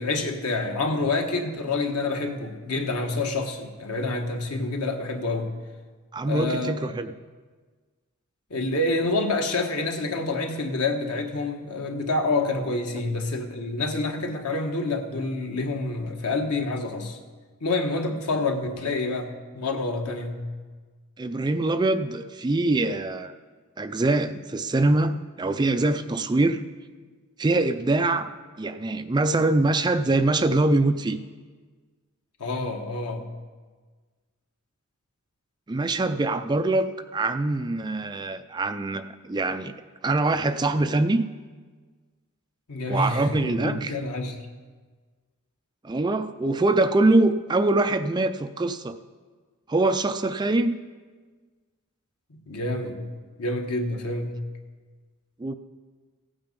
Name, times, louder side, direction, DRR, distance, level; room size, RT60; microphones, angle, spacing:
voice 1, 0.0-5.5 6.2-6.8 8.5-17.2 17.6-20.4 32.4-33.3 42.7-44.4 52.5-53.1 53.4-54.4, left 2 dB, 90° left, 4 dB, 1.4 m, -27 dB
voice 2, 6.1-7.1 21.2-23.3 23.8-26.6 27.4-28.3 28.6-31.2 35.7-39.7 40.0-41.2 42.9-43.9 45.8-49.0 49.7-50.8 55.4-55.5, right 2 dB, 20° right, 9 dB, 0.4 m, -23 dB
15.0 x 8.9 x 5.3 m, 1.4 s
head